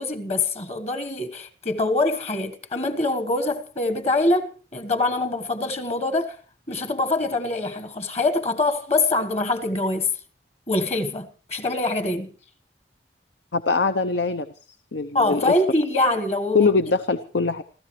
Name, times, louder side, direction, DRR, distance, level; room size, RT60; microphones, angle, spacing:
voice 1, 0.0-6.4 6.7-10.1 10.7-12.3 15.1-16.7, left 2 dB, 35° left, 1.3 m, -24 dB
voice 2, 13.5-14.5 14.9-15.5 16.5-17.6, left 4 dB, 85° left, 0.7 m, -22 dB
29.5 x 13.5 x 3.2 m
head